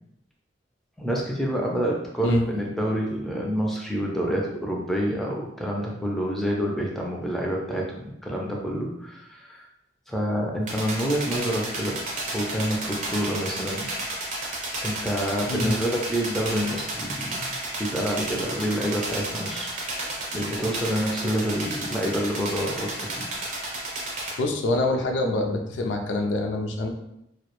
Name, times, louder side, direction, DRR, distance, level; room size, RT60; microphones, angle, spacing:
voice 1, 1.0-9.7 10.1-12.0 12.3-13.9 14.8-23.3, equal, ahead, -2 dB, 0.3 m, -28 dB
sound 1, 10.7-24.3, right 1 dB, 45° right, 0.6 m, -32 dB
voice 2, 24.4-26.9, left 2 dB, 80° left, 3 dB, 0.4 m, -25 dB
2.2 x 2.0 x 2.9 m, 0.80 s
head